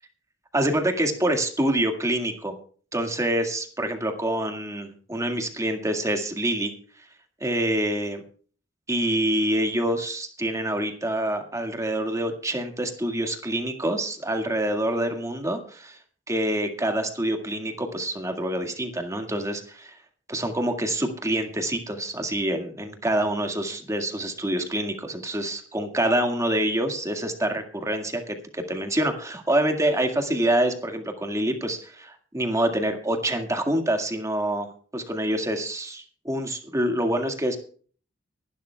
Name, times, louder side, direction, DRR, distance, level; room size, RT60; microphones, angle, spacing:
voice 1, 0.5-2.5 2.9-6.7 7.4-8.2 8.9-16.0 16.3-20.0 20.3-34.7 34.9-37.6, right 1 dB, 15° right, 5 dB, 1.9 m, -26 dB
23.5 x 12.0 x 2.3 m, 0.43 s
head